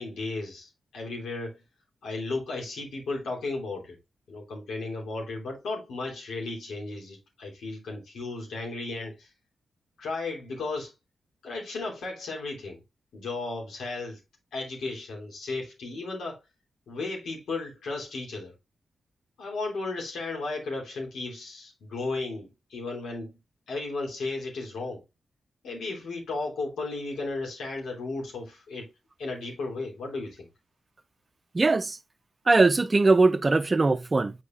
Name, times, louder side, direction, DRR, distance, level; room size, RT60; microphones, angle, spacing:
voice 1, 0.0-1.6 2.0-4.0 4.3-9.3 10.0-10.9 11.4-12.8 13.1-14.2 14.5-16.4 16.9-18.5 19.4-23.4 23.7-25.0 25.6-28.9 29.2-30.5, left 3 dB, 85° left, 3.1 m, -34 dB
voice 2, 31.5-32.0 32.5-34.3, right 3 dB, 40° right, 0.7 m, -21 dB
8.1 x 4.7 x 2.5 m
supercardioid pair, 45°, 0 cm